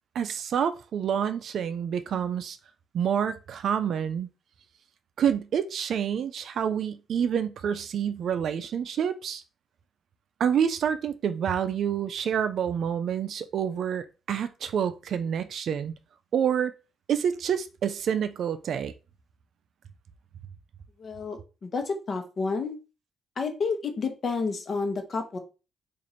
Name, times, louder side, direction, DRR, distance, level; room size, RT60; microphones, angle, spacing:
voice 1, 0.1-2.6 2.9-4.3 5.2-9.4 10.4-15.9 16.3-16.7 17.1-18.9, right 8 dB, 65° right, 0.4 m, -28 dB
voice 2, 21.0-22.8 23.4-25.4, left 4 dB, 45° left, 0.9 m, -30 dB
3.0 x 2.5 x 4.0 m
cardioid pair, 90°, 0 cm